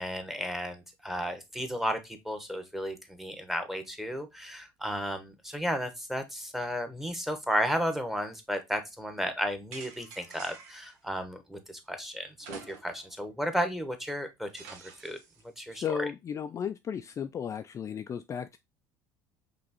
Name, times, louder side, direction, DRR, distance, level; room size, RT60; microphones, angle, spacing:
voice 1, 0.0-15.2 15.6-16.0, equal, 5° right, 1.0 m, -33 dB
sound 1, 9.7-10.9 12.4-13.1 13.5-13.6 14.6-15.4, right 5 dB, 85° right, 1.0 m, -47 dB
voice 2, 15.7-18.6, left 8 dB, 35° left, 0.3 m, -34 dB
5.2 x 3.1 x 2.8 m
supercardioid pair, 85°, 9 cm